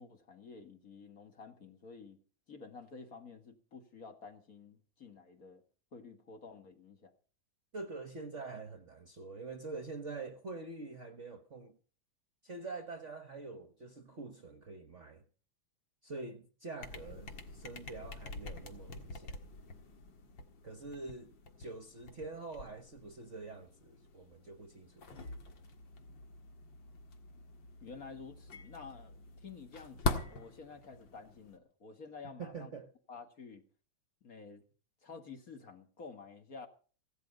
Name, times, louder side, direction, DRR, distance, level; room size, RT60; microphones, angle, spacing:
voice 1, 0.0-2.2 2.5-5.6 5.9-7.1 27.8-32.7 33.1-33.6 34.2-34.6 35.0-36.7, left 5 dB, 45° left, 2.2 m, -51 dB
voice 2, 7.7-11.8 12.4-15.2 16.0-19.4 20.6-25.2 32.2-32.9, right 3 dB, 45° right, 1.1 m, -45 dB
sound 1, 16.8-31.6, left 3 dB, 60° left, 2.4 m, -44 dB
17.0 x 12.5 x 5.3 m
omnidirectional pair, 2.3 m